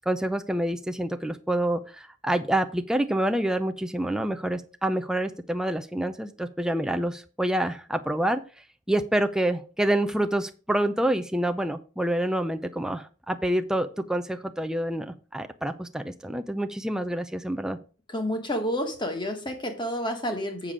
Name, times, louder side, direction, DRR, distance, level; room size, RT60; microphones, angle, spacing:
voice 1, 0.1-8.4 8.9-17.8, right 1 dB, 5° right, 6 dB, 0.5 m, -27 dB
voice 2, 18.1-20.7, equal, 25° left, 5 dB, 1.5 m, -29 dB
7.4 x 6.7 x 4.9 m, 0.37 s
head